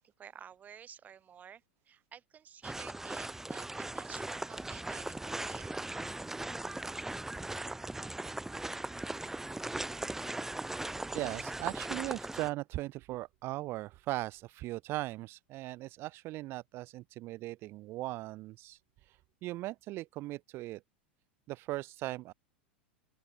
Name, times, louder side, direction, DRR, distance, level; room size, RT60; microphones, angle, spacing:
voice 1, 0.0-5.8, right 8 dB, 25° right, 1.4 m, -52 dB
sound 1, 2.6-12.5, right 2 dB, 5° right, 1.5 m, -39 dB
voice 2, 11.1-18.8 19.1-19.2 19.4-20.8 21.5-22.3, right 18 dB, 45° right, 0.9 m, -38 dB
open air
figure-of-eight pair, 85°, 6 cm